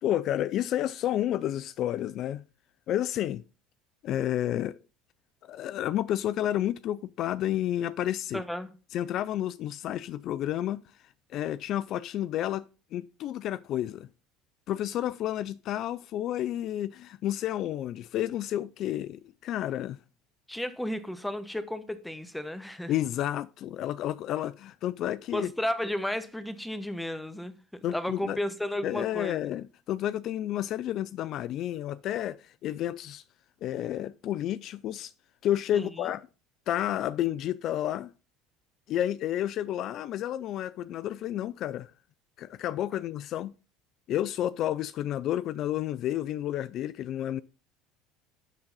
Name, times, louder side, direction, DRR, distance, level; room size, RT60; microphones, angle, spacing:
voice 1, 0.0-2.4 2.9-3.4 4.0-4.8 5.4-8.4 8.9-10.8 11.3-12.6 12.9-14.1 14.7-20.0 22.9-25.5 27.8-28.4 28.8-33.2 33.6-35.1 35.4-36.3 36.7-38.1 38.9-41.9 42.4-43.5 44.1-47.4, left 12 dB, 55° left, 0.3 m, -30 dB
voice 2, 8.3-8.7 20.5-22.9 25.3-27.6 27.9-29.4 35.7-36.1, left 1 dB, 5° left, 1.0 m, -33 dB
11.5 x 3.9 x 3.9 m
supercardioid pair, 95°, 0 cm